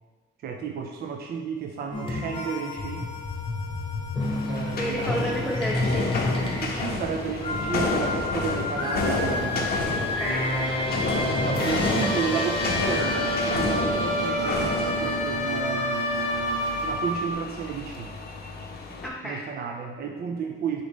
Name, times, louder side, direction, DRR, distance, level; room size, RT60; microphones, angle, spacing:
voice 1, 0.4-3.1 4.4-5.3 6.6-10.1 11.4-16.1 16.8-18.1 19.2-20.8, right 6 dB, 50° right, 3 dB, 0.4 m, -32 dB
sound 1, 1.9-17.3, left 1 dB, 25° left, 0.9 m, -28 dB
sound 2, 4.2-19.1, left 3 dB, 50° left, 0.7 m, -31 dB
voice 2, 4.8-6.2 10.0-10.5 19.0-19.4, equal, ahead, -3 dB, 0.5 m, -31 dB
3.9 x 3.7 x 3.5 m, 1.4 s
cardioid pair, 90°, 20 cm